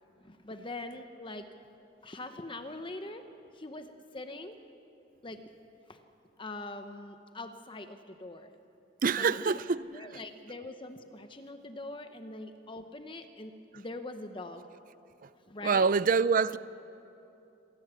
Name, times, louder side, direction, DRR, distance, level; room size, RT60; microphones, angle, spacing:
voice 1, 0.2-1.5 2.0-3.2 3.5-4.5 5.2-5.4 5.9-6.0 6.4-8.5 9.2-14.7 15.5-15.9, left 2 dB, 25° left, 1.0 m, -43 dB
voice 2, 9.0-10.2 15.2-15.3 15.6-16.6, right 5 dB, 45° right, 0.4 m, -26 dB
26.5 x 18.5 x 8.2 m
head